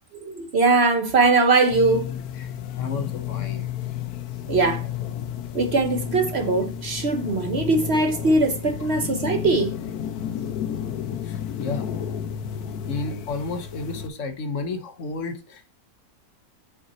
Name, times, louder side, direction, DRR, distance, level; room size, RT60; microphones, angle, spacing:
voice 1, 0.1-2.1 4.5-4.9 5.5-9.8, right 3 dB, 50° right, 1.0 m, -21 dB
sound 1, 1.7-14.1, left 8 dB, 80° left, 1.2 m, -32 dB
voice 2, 2.8-3.7 11.2-11.9 12.9-15.7, left 3 dB, 60° left, 1.2 m, -32 dB
5.3 x 5.0 x 4.1 m
omnidirectional pair, 1.6 m